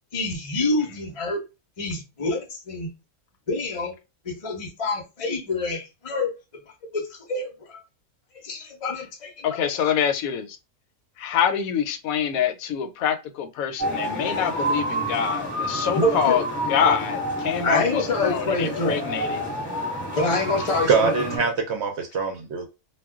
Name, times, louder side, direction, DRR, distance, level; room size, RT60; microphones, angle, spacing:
voice 1, 0.1-1.4 1.8-2.9 3.5-4.0 4.2-6.3 6.9-7.8 8.4-10.0 15.9-16.4 17.6-19.0 20.2-21.6, left 2 dB, 35° left, 0.5 m, -27 dB
voice 2, 9.4-10.6 11.2-16.4 16.7-19.5, left 8 dB, 75° left, 1.0 m, -25 dB
sound 1, 13.8-21.4, equal, 5° right, 1.0 m, -29 dB
voice 3, 20.9-22.7, right 5 dB, 65° right, 0.7 m, -23 dB
2.3 x 2.2 x 3.5 m
omnidirectional pair, 1.5 m